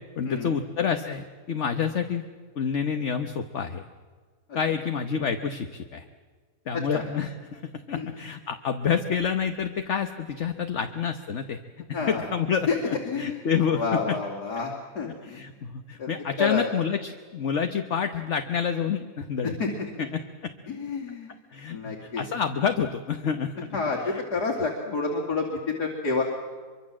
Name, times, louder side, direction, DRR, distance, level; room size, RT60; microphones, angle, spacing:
voice 1, 0.2-2.2 2.6-3.8 4.5-6.1 6.7-7.6 7.9-11.6 11.9-14.2 15.2-19.5 20.0-20.5 21.5-23.8, left 7 dB, 50° left, 7 dB, 1.3 m, -28 dB
voice 2, 11.9-12.3 12.7-15.4 16.0-16.1 16.4-16.6 19.6-19.7 20.7-21.3 21.7-22.2 23.7-26.2, left 4 dB, 80° left, -1 dB, 3.4 m, -29 dB
24.5 x 24.0 x 7.5 m, 1.5 s
omnidirectional pair, 1.7 m